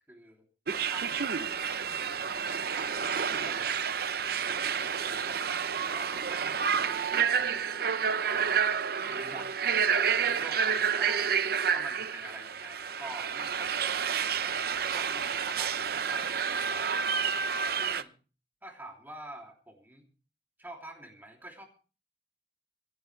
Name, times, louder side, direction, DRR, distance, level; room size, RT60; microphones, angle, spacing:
voice 1, 0.1-0.5 0.9-3.8 4.2-4.7 5.0-7.7 8.2-8.8 9.1-9.5 9.8-11.3 11.7-13.9 14.4-17.3 17.8-18.1 18.6-20.0 20.6-21.6, right 1 dB, 10° right, 1 dB, 3.1 m, -47 dB
sound 1, 0.7-18.0, right 7 dB, 60° right, 0.8 m, -29 dB
26.0 x 11.0 x 3.3 m, 0.37 s
head